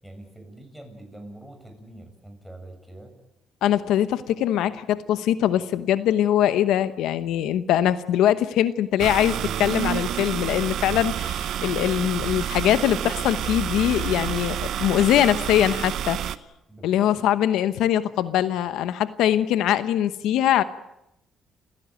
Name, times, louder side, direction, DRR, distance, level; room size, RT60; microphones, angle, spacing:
voice 1, 0.0-3.1 16.7-17.2, right 1 dB, ahead, 6 dB, 7.4 m, -44 dB
voice 2, 3.6-16.2 16.8-20.6, left 11 dB, 90° left, 13 dB, 0.9 m, -22 dB
sound 1, 9.0-16.4, right 10 dB, 75° right, 0.9 m, -29 dB
29.5 x 16.0 x 9.2 m, 0.90 s
cardioid pair, 90°, 0 cm